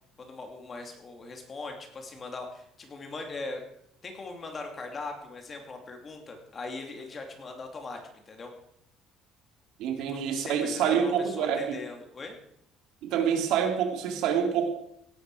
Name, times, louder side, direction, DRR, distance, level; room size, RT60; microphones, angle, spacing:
voice 1, 0.2-3.6 4.0-8.5 10.1-12.3, left 3 dB, 25° left, 3 dB, 2.8 m, -40 dB
voice 2, 9.8-11.8 13.0-14.7, right 7 dB, 70° right, 5 dB, 2.5 m, -27 dB
17.0 x 11.5 x 5.0 m, 0.72 s
cardioid pair, 150°, 0 cm